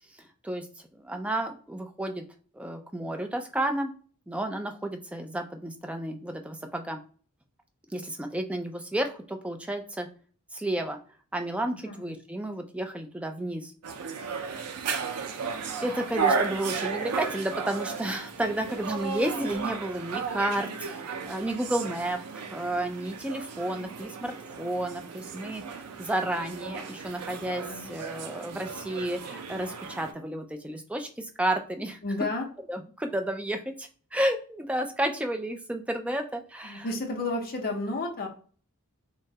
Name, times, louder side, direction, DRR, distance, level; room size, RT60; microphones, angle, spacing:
voice 1, 0.1-0.7 0.9-2.2 2.5-3.9 4.3-7.0 7.9-10.1 10.5-11.0 11.3-13.7 15.8-32.0 32.7-36.9, right 1 dB, 5° right, 5 dB, 0.3 m, -32 dB
sound 1, 13.8-30.1, right 5 dB, 85° right, 0.5 m, -34 dB
voice 2, 32.0-32.5 36.6-38.3, left 2 dB, 40° left, 1 dB, 0.7 m, -31 dB
3.0 x 2.2 x 2.7 m, 0.42 s
head